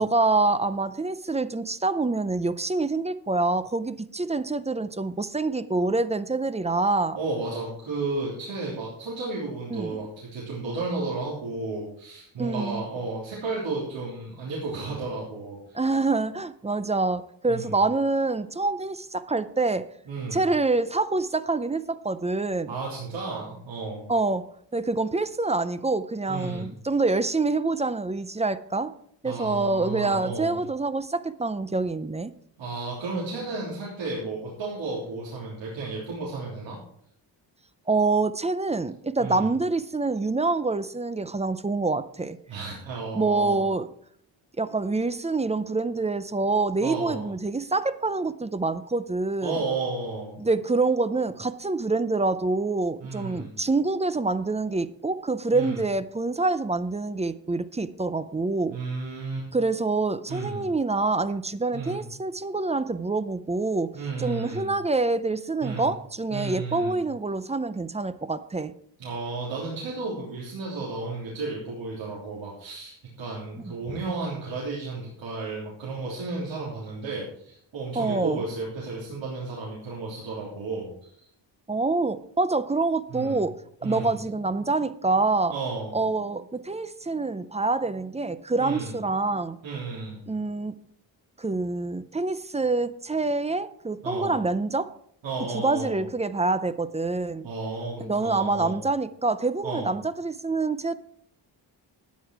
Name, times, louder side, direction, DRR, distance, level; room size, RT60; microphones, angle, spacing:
voice 1, 0.0-7.2 9.7-10.0 12.4-12.8 15.7-19.9 20.3-22.7 24.1-24.4 24.7-28.9 29.2-32.3 37.9-42.4 43.1-43.9 44.6-49.5 50.4-58.8 59.5-68.7 73.6-73.7 77.9-78.4 81.7-83.6 83.8-85.5 85.9-89.6 90.3-90.8 91.4-94.9 95.5-97.5 98.0-100.9, right 3 dB, 15° right, 13 dB, 0.5 m, -26 dB
voice 2, 7.1-15.8 17.5-17.7 20.0-20.4 22.7-24.1 26.3-26.7 29.2-30.6 32.6-36.8 39.2-39.5 42.5-43.6 46.8-47.2 49.4-50.4 53.0-53.5 55.5-55.8 58.7-59.5 60.3-60.7 61.7-62.0 63.9-64.7 65.6-65.9 66.3-67.0 69.0-81.3 83.1-83.4 83.8-84.1 85.5-86.0 88.6-88.9 89.6-90.2 94.0-94.3 95.2-96.0 97.4-98.8 99.6-99.9, right 3 dB, 80° right, -6 dB, 3.5 m, -33 dB
12.5 x 9.3 x 4.7 m, 0.66 s
wide cardioid pair, 140°, 45 cm